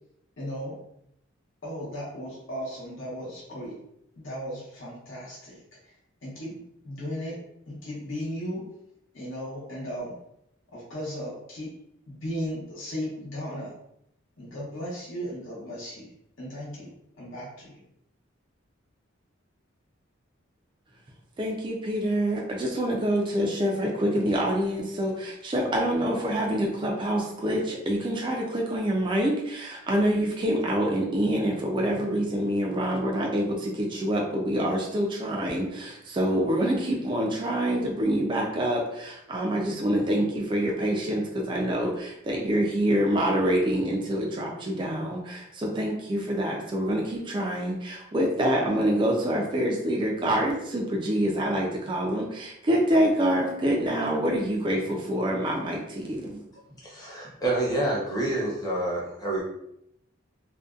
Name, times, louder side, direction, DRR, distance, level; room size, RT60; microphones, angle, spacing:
voice 1, 0.4-0.8 1.6-3.8 4.2-5.6 5.8-5.9 6.2-6.6 6.8-7.4 7.7-8.7 9.1-10.1 10.7-11.7 12.1-13.7 14.4-16.9 17.2-17.8, equal, 70° left, -6 dB, 0.9 m, -36 dB
voice 2, 21.4-56.4, equal, 25° right, -1 dB, 0.3 m, -26 dB
voice 3, 56.8-59.4, right 1 dB, 20° left, -5 dB, 0.7 m, -28 dB
2.6 x 2.1 x 2.3 m, 0.77 s
head